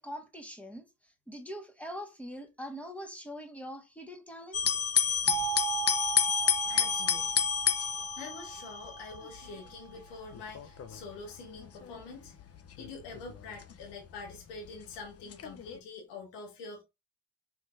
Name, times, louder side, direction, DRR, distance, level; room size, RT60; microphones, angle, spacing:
voice 1, 0.0-4.8, equal, 5° left, 1.4 m, -43 dB
sound 1, 4.5-14.7 15.3-15.8, left 8 dB, 35° left, 0.6 m, -31 dB
sound 2, 5.3-10.0, right 14 dB, 65° right, 0.7 m, -38 dB
voice 2, 6.7-7.4 8.2-12.3 12.8-16.8, left 4 dB, 80° left, 1.5 m, -45 dB
4.3 x 3.8 x 2.5 m
hypercardioid pair, 50°, 41 cm